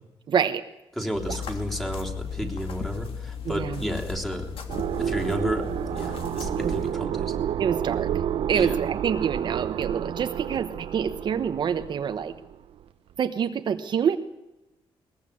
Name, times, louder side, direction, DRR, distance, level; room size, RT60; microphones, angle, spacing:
voice 1, 0.3-0.6 3.5-3.8 6.6-6.7 7.6-8.1 8.5-12.3 13.2-14.2, right 7 dB, 55° right, 7 dB, 1.1 m, -26 dB
voice 2, 0.9-4.5 5.0-7.3 8.5-8.8, equal, 5° left, 1 dB, 3.2 m, -32 dB
sound 1, 1.1-6.9, left 7 dB, 80° left, 3.1 m, -36 dB
sound 2, 4.7-12.5, right 9 dB, 80° right, 1.0 m, -30 dB
21.5 x 20.5 x 8.6 m, 0.95 s
wide cardioid pair, 165°, 9 cm